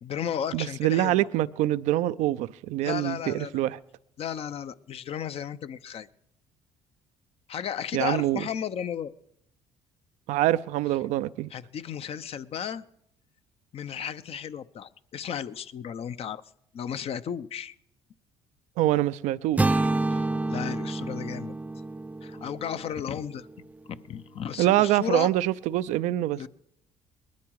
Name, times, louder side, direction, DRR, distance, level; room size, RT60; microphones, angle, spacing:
voice 1, 0.0-1.2 2.8-3.6 4.2-6.1 7.5-9.1 11.5-12.8 13.7-16.4 16.7-17.7 20.1-21.6 22.2-23.5 24.0-25.3 26.3-26.5, left 8 dB, 55° left, 0.8 m, -34 dB
voice 2, 0.5-3.8 7.9-8.4 10.3-11.5 18.8-19.9 24.6-26.5, right 14 dB, 80° right, 0.5 m, -25 dB
sound 1, 19.6-23.6, right 2 dB, 10° right, 0.5 m, -29 dB
20.5 x 12.5 x 4.8 m
supercardioid pair, 75°, 12 cm